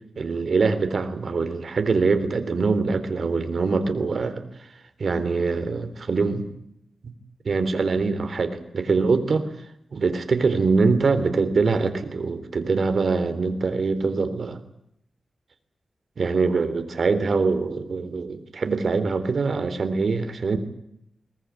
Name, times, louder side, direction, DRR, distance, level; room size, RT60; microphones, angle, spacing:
voice 1, 0.2-4.4 5.0-6.5 7.0-7.1 7.5-9.5 9.9-14.6 16.2-20.6, right 4 dB, 60° right, 10 dB, 3.6 m, -23 dB
22.5 x 20.0 x 9.7 m, 0.77 s
wide cardioid pair, 100°, 0 cm